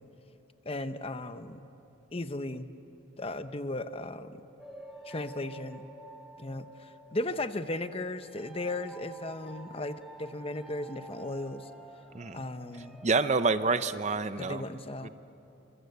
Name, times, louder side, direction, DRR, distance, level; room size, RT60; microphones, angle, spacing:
voice 1, 0.6-1.7 2.1-2.7 3.2-4.4 5.0-5.9 6.4-11.7 12.3-13.0 14.4-15.1, left 2 dB, 30° left, 10 dB, 0.8 m, -36 dB
sound 1, 4.6-13.1, right 1 dB, ahead, 2.5 m, -50 dB
voice 2, 13.0-14.6 15.0-15.1, right 4 dB, 35° right, 11 dB, 0.6 m, -27 dB
27.5 x 25.5 x 8.3 m, 2.9 s
head